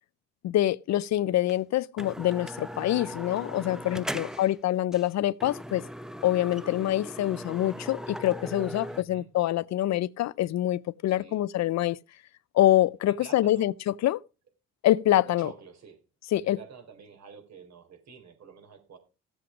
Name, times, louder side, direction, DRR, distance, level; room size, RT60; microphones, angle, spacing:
voice 1, 0.4-5.9 6.2-12.0 12.5-14.2 14.8-15.5 16.3-16.6, left 13 dB, 65° left, 0.5 m, -25 dB
sound 1, 1.5-1.6 2.0-4.6 4.9-5.1 5.4-9.0, equal, ahead, 0.7 m, -39 dB
voice 2, 4.0-4.6 8.9-9.3 11.1-11.4 13.1-13.7 15.2-16.0 16.4-19.0, right 5 dB, 60° right, 3.8 m, -48 dB
15.0 x 7.8 x 5.0 m
cardioid pair, 90°, 30 cm